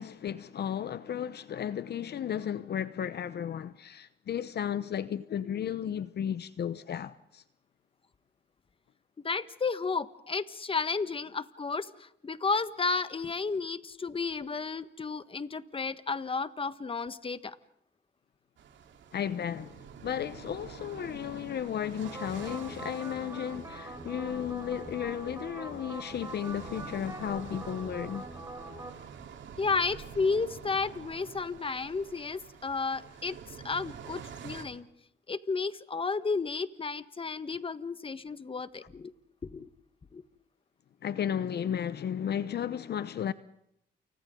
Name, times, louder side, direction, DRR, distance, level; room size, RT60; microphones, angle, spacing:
voice 1, 0.0-7.4 19.1-28.3 41.0-43.3, left 9 dB, 55° left, 0.9 m, -34 dB
voice 2, 9.2-17.6 29.6-34.9 35.3-39.1 39.4-39.7 40.1-40.2, left 4 dB, 25° left, 1.5 m, -32 dB
sound 1, 18.6-34.6, right 7 dB, 70° right, 3.7 m, -47 dB
sound 2, 22.0-28.9, right 2 dB, 15° right, 7.4 m, -43 dB
30.0 x 29.5 x 3.8 m
cardioid pair, 90°, 20 cm